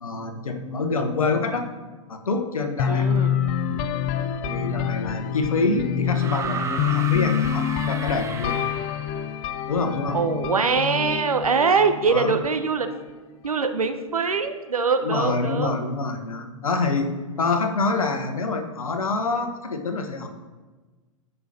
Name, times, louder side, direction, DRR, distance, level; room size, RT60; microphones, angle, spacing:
voice 1, 0.0-1.7 2.1-3.1 3.7-3.9 4.4-8.7 9.7-10.2 12.1-12.3 15.0-17.1 17.4-20.3, left 3 dB, 80° left, 6 dB, 1.0 m, -26 dB
sound 1, 2.8-12.6, left 9 dB, 35° left, 0.5 m, -27 dB
voice 2, 2.9-3.3 10.1-12.9 13.4-15.7, right 5 dB, 85° right, 8 dB, 0.7 m, -23 dB
sound 2, 6.2-9.2 10.5-10.6, right 5 dB, 15° right, 0.7 m, -33 dB
14.0 x 5.5 x 2.7 m, 1.3 s
figure-of-eight pair, 100°, 18 cm